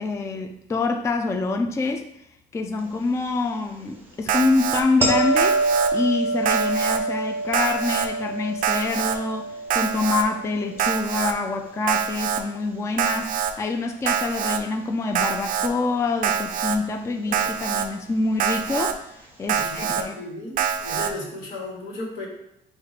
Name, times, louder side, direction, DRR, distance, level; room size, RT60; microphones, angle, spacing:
voice 1, 0.0-2.1 2.5-5.6 5.9-20.1, left 3 dB, 15° left, 4 dB, 0.3 m, -26 dB
Alarm, 4.3-4.8 5.4-5.9 6.4-7.0 7.5-8.1 8.6-9.2 9.7-10.2 10.8-11.3 11.9-12.4 13.0-13.5 14.1-14.6 15.1-15.7 16.2-16.8 17.3-17.9 18.4-18.9 19.5-20.0 20.6-21.1, right 8 dB, 55° right, 0.4 m, -25 dB
sound 1, 5.0-12.0 17.3-17.4, right 2 dB, 10° right, 1.0 m, -27 dB
voice 2, 19.5-22.3, left 2 dB, 80° left, -2 dB, 1.4 m, -35 dB
4.5 x 2.4 x 4.0 m, 0.82 s
cardioid pair, 110°, 17 cm